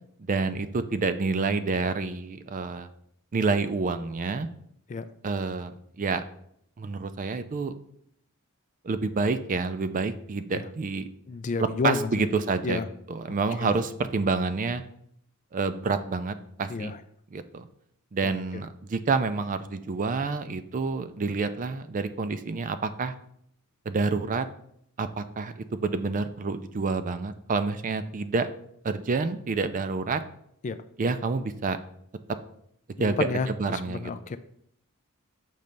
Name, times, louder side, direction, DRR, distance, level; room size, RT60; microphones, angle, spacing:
voice 1, 0.2-2.9 3.3-4.5 5.2-6.2 6.8-7.8 8.8-11.1 11.6-12.8 13.1-14.8 15.5-16.9 17.3-17.7 18.1-23.1 23.9-24.5 25.0-28.5 28.8-30.2 31.0-31.8 33.0-33.2 33.5-34.4, right 4 dB, 35° right, 11 dB, 0.4 m, -28 dB
voice 2, 11.3-12.2 12.6-12.9 13.6-13.7 16.7-17.0 18.2-18.3 30.6-30.8 33.0-34.4, left 4 dB, 35° left, 12 dB, 0.3 m, -30 dB
7.0 x 3.2 x 5.2 m, 0.71 s
head